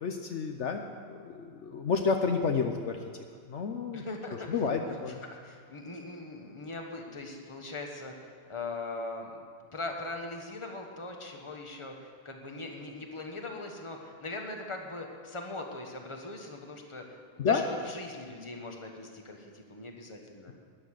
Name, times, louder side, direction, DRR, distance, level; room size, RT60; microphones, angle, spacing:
voice 1, 0.0-3.0 3.5-4.0 4.5-5.2 17.4-17.6, left 5 dB, 65° left, 4 dB, 1.1 m, -30 dB
voice 2, 3.9-4.5 4.8-8.1 8.5-9.4 9.7-17.0 17.4-20.5, left 2 dB, 25° left, 2 dB, 1.4 m, -40 dB
13.0 x 10.5 x 6.5 m, 2.2 s
omnidirectional pair, 1.3 m